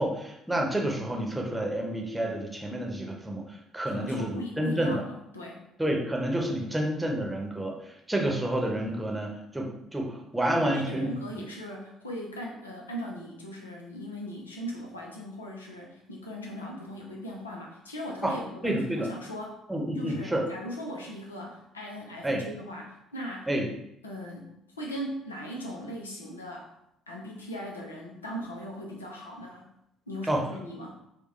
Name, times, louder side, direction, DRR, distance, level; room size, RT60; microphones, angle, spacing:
voice 1, 0.0-5.0 5.8-11.1 18.2-18.4 18.6-19.1 19.7-20.4 22.2-22.4 23.5-23.7 30.3-30.4, right 1 dB, 10° right, 0 dB, 0.9 m, -29 dB
voice 2, 3.8-5.6 6.6-6.7 10.5-19.6 19.9-23.5 24.0-26.7 27.1-29.7 30.1-31.0, equal, 85° left, -1 dB, 0.6 m, -39 dB
4.6 x 2.3 x 3.1 m, 0.80 s
figure-of-eight pair, 50°, 0 cm